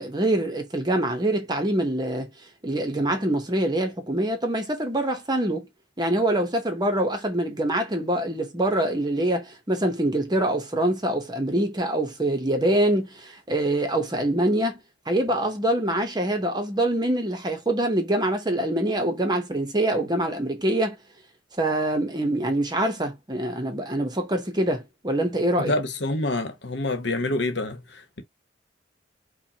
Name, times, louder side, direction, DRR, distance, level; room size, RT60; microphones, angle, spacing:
voice 1, 0.0-2.3 2.6-5.7 6.0-21.0 21.6-25.7, right 1 dB, 25° right, 0.9 m, -25 dB
voice 2, 25.6-28.2, left 2 dB, 70° left, 1.0 m, -27 dB
4.7 x 2.3 x 2.8 m
head